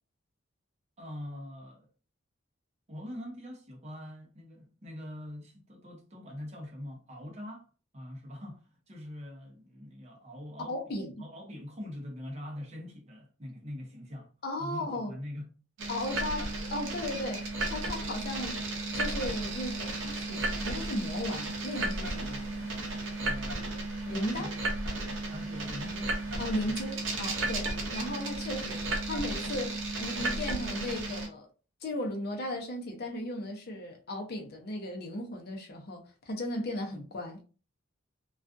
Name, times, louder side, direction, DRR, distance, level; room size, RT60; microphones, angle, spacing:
voice 1, 1.0-1.9 2.9-7.7 7.9-10.7 11.2-14.3 14.6-15.5 23.2-23.8 24.4-24.5 25.3-26.8 27.4-27.5, left 1 dB, 30° right, 0.6 m, -43 dB
voice 2, 10.6-11.2 14.4-15.1 15.9-18.6 18.9-22.7 24.1-24.6 26.4-31.5 31.8-37.4, left 1 dB, 50° left, 0.6 m, -36 dB
sound 1, 15.8-31.3, right 2 dB, 70° right, 0.7 m, -34 dB
2.4 x 2.2 x 2.5 m
head